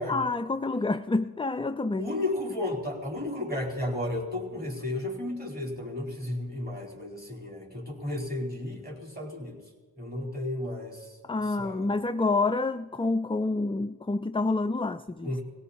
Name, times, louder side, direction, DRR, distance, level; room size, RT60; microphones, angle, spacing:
voice 1, 0.1-2.1 11.2-15.3, left 3 dB, 15° left, 9 dB, 0.4 m, -28 dB
voice 2, 2.0-9.6 10.0-11.9 15.2-15.4, left 1 dB, 20° right, 0 dB, 4.3 m, -33 dB
19.0 x 17.0 x 4.3 m, 1.3 s
cardioid pair, 45°, 42 cm